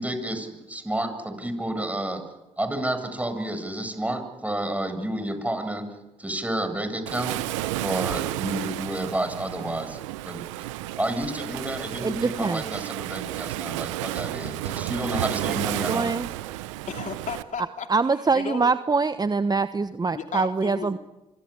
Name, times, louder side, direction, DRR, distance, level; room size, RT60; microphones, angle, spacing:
voice 1, 0.0-2.2 2.6-5.8 6.2-7.4 7.6-10.0 10.2-10.4 11.0-16.1, right 1 dB, 10° right, 7 dB, 8.0 m, -30 dB
Waves surf, 7.1-17.4, right 16 dB, 85° right, 1.0 m, -32 dB
voice 2, 12.0-12.6 15.9-16.3 17.9-21.0, right 4 dB, 25° right, 11 dB, 1.1 m, -24 dB
voice 3, 16.9-17.9 18.3-18.7 20.1-21.0, left 6 dB, 55° left, 5 dB, 3.1 m, -34 dB
26.0 x 26.0 x 8.7 m, 1.0 s
hypercardioid pair, 50°, 16 cm